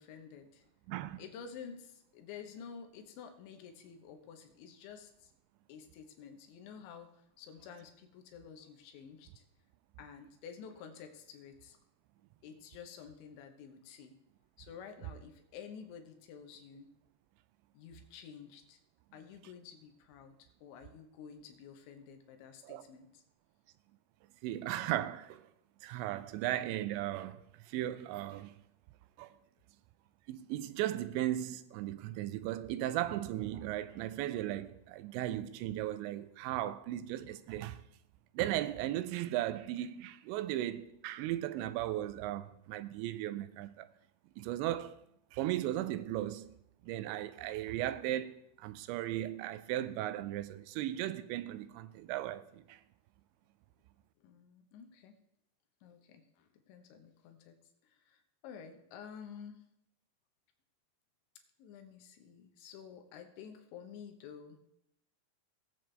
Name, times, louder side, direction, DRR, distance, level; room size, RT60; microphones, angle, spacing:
voice 1, 0.0-0.7 1.2-5.3 5.7-9.4 10.0-11.8 12.4-14.1 14.6-16.9 17.7-18.8 19.1-23.2 54.2-55.2 55.8-57.6 57.8-59.6 61.6-64.6, left 7 dB, 80° left, 3.2 m, -51 dB
voice 2, 0.9-1.2 22.6-22.8 24.4-25.5 25.8-28.5 29.2-29.3 30.3-37.8 38.3-43.9 44.4-45.0 45.3-46.5 46.8-52.8, right 13 dB, 85° right, 2.8 m, -36 dB
19.5 x 7.7 x 3.3 m
omnidirectional pair, 5.4 m